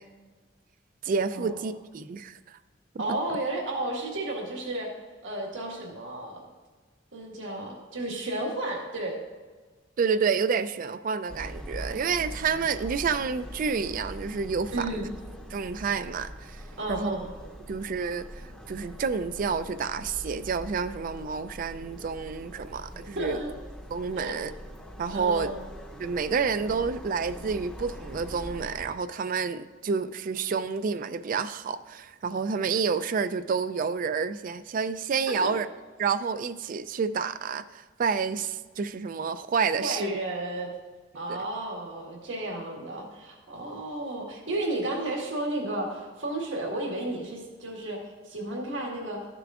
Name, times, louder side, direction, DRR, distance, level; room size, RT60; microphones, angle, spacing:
voice 1, 1.0-2.6 2.9-3.0 10.0-15.0 15.5-16.6 16.9-17.2 17.7-23.4 23.9-24.5 25.0-25.5 26.0-35.7 36.0-40.1 41.3-41.5 43.7-43.8, right 5 dB, 45° right, 12 dB, 0.3 m, -29 dB
voice 2, 3.0-4.9 5.2-6.4 7.1-9.2 14.7-15.1 16.8-17.3 23.1-23.5 24.1-24.4 25.1-25.6 35.3-35.5 39.8-40.7 41.1-48.0 48.2-49.2, right 1 dB, 85° right, -2 dB, 1.7 m, -32 dB
sound 1, 11.3-29.0, equal, 5° left, 0.7 m, -43 dB
13.5 x 6.8 x 2.4 m, 1.4 s
head